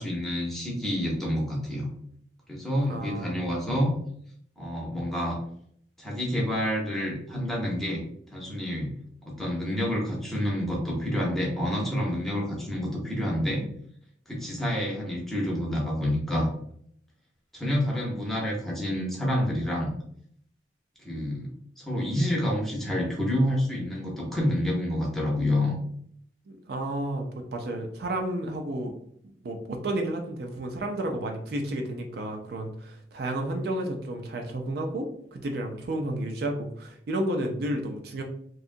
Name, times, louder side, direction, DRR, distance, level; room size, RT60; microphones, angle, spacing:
voice 1, 0.0-1.9 2.5-3.9 4.6-5.4 6.0-8.0 8.3-8.9 9.2-13.6 14.3-16.5 17.5-19.9 21.0-21.5 21.8-25.8, left 1 dB, ahead, -3 dB, 0.6 m, -28 dB
voice 2, 2.9-3.5 26.5-28.9 29.4-38.2, right 1 dB, 55° right, 3 dB, 0.4 m, -32 dB
2.7 x 2.3 x 2.5 m, 0.66 s
head